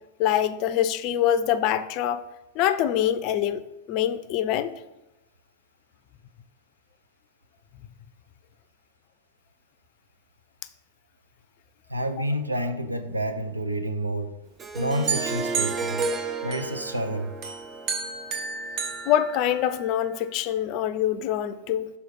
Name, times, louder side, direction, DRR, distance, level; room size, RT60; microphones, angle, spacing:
voice 1, 0.2-2.2 2.6-4.7 19.1-21.9, left 10 dB, 40° left, 13 dB, 0.4 m, -24 dB
voice 2, 11.9-14.3 14.7-16.0 16.4-17.3, right 1 dB, 85° right, 7 dB, 0.6 m, -29 dB
Harp, 14.6-19.5, right 4 dB, 20° right, 0.5 m, -33 dB
sound 1, 15.1-17.0 17.4-20.0, right 5 dB, 40° right, 1.1 m, -32 dB
6.4 x 4.2 x 5.6 m, 0.96 s
figure-of-eight pair, 90°, 0 cm